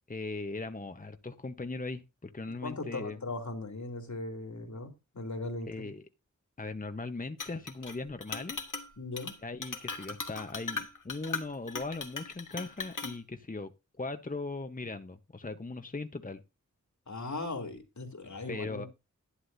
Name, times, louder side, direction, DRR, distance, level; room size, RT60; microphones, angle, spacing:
voice 1, 0.1-3.2 5.7-6.0 6.6-8.6 9.4-13.7 14.0-16.4 18.5-18.9, left 3 dB, 25° left, 1.0 m, -39 dB
voice 2, 2.6-5.9 9.0-9.3 17.1-18.9, left 2 dB, 65° left, 2.9 m, -38 dB
Chink clink, 7.4-7.9 8.2-8.9 9.2-9.3 9.6-13.2, left 4 dB, 85° left, 1.8 m, -38 dB
11.5 x 11.0 x 2.7 m
wide cardioid pair, 50°, 30 cm